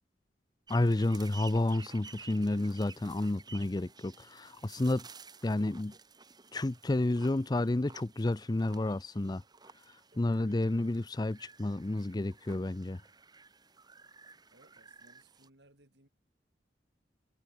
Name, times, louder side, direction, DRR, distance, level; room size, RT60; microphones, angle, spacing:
voice 1, 0.7-5.1 5.4-5.9 6.5-9.4 10.2-13.0, left 2 dB, 25° left, 0.5 m, -30 dB
sound 1, 0.7-15.5, right 5 dB, 25° right, 2.8 m, -54 dB
sound 2, 4.1-5.4 7.1-9.0 10.1-11.6, right 1 dB, 40° right, 6.1 m, -69 dB
voice 2, 14.5-16.1, right 2 dB, 75° right, 5.7 m, -63 dB
head